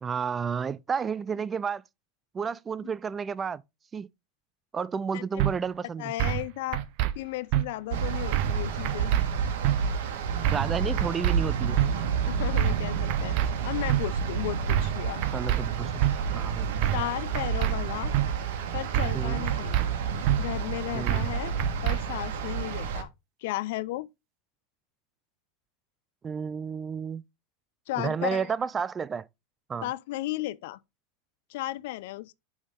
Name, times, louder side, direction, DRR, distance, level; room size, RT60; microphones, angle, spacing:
voice 1, 0.0-1.8 2.3-3.6 3.9-4.1 4.7-6.1 10.5-11.8 15.3-16.7 19.1-19.5 20.9-21.3 26.2-27.2 28.0-29.3 29.7-29.9, right 6 dB, 20° right, 0.3 m, -31 dB
sound 1, 5.4-5.5 6.2-6.4 6.7-7.1 7.5-7.6 8.3-8.6 8.8-9.2 9.6-9.8 10.4-10.7 11.0-11.4 11.8-11.9 12.6-12.8 13.1-13.5 13.9-14.0 14.7-15.0 15.2-15.6 16.0-16.1 16.8-17.1 17.3-17.7 18.1-18.3 18.9-19.2 19.5-19.9 20.3-20.4 21.1-21.3 21.6-22.0, right 13 dB, 55° right, 0.8 m, -25 dB
voice 2, 6.0-6.8 7.2-9.1 12.3-13.4 13.6-15.3 16.9-18.1 18.7-19.8 20.4-21.5 21.8-23.1 23.4-24.1 27.9-28.5 29.8-30.8 31.5-32.4, left 17 dB, 70° left, 0.4 m, -34 dB
harlingen beach small waves, 7.9-23.0, right 6 dB, 70° right, 1.4 m, -30 dB
6.2 x 3.6 x 5.0 m
hypercardioid pair, 110°, 0 cm